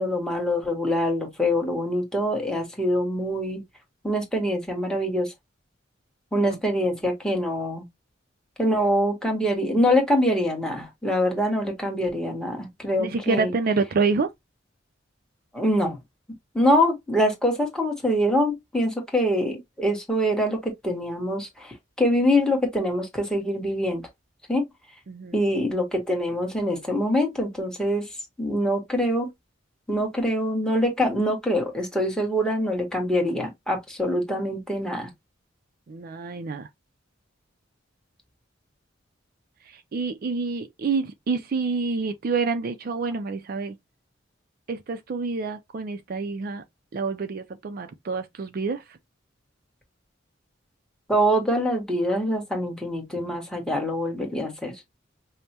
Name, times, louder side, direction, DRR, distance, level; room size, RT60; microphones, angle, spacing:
voice 1, 0.0-3.6 4.0-5.3 6.3-7.9 8.6-13.5 15.5-16.0 16.5-24.0 24.5-24.6 25.3-28.1 28.4-29.3 29.9-35.1 51.1-54.7, equal, 5° left, 1.3 m, -24 dB
voice 2, 13.0-14.3 25.1-25.4 35.9-36.7 39.7-43.8 44.7-46.6 46.9-49.0 53.1-53.2, right 4 dB, 50° right, 0.4 m, -27 dB
5.2 x 2.1 x 2.9 m
head